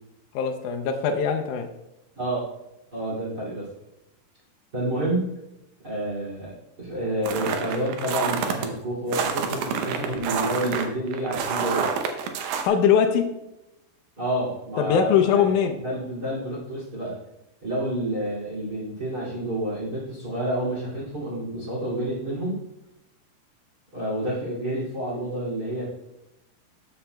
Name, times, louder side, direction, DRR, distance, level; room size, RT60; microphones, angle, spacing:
voice 1, 0.3-1.7 12.6-13.3 14.8-15.8, left 7 dB, 85° left, 5 dB, 1.7 m, -21 dB
voice 2, 2.9-3.7 4.7-5.3 5.8-11.9 14.2-15.5 15.8-17.2 17.6-22.6 23.9-25.9, right 1 dB, 30° right, -5 dB, 2.4 m, -29 dB
sound 1, 7.3-8.7 9.1-12.7, right 6 dB, 75° right, 2.3 m, -27 dB
13.0 x 6.8 x 2.2 m, 0.90 s
omnidirectional pair, 4.3 m